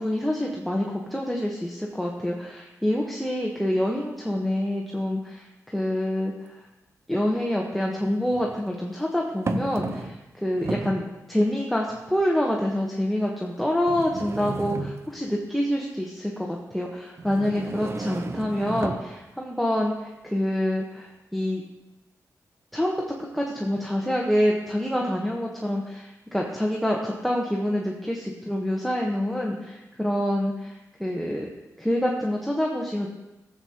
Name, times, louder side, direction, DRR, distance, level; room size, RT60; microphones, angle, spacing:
voice 1, 0.0-6.7 7.1-21.6 22.7-31.5 31.8-33.1, left 1 dB, ahead, -1 dB, 1.1 m, -27 dB
sound 1, 6.5-6.6 7.9-8.6 9.5-10.3 10.5-11.1 11.9-12.0 12.8-12.9 13.9-15.3 17.2-19.1, right 3 dB, 45° right, 0.7 m, -33 dB
15.0 x 8.0 x 2.9 m, 1.0 s
cardioid pair, 85°, 6 cm